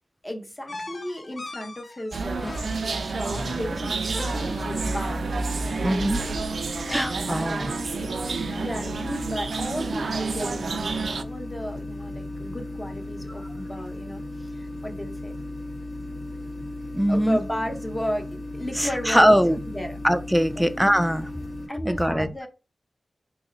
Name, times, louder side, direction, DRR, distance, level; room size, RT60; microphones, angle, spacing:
voice 1, 0.2-5.2 6.6-7.4 8.5-15.3 17.1-19.3 19.7-20.0 20.6-20.9 21.7-22.5, equal, 20° left, 0.8 m, -34 dB
sound 1, 0.7-5.0, left 2 dB, 55° left, 0.5 m, -39 dB
sound 2, 2.1-11.2, right 4 dB, 80° right, 0.3 m, -29 dB
sound 3, 4.3-21.7, left 1 dB, 85° left, 1.9 m, -36 dB
voice 2, 5.8-6.2 6.9-7.8 13.3-13.5 16.9-17.4 18.8-19.6 20.0-21.3 21.8-22.3, equal, 5° right, 0.4 m, -21 dB
3.1 x 2.7 x 3.9 m
wide cardioid pair, 95°, 0 cm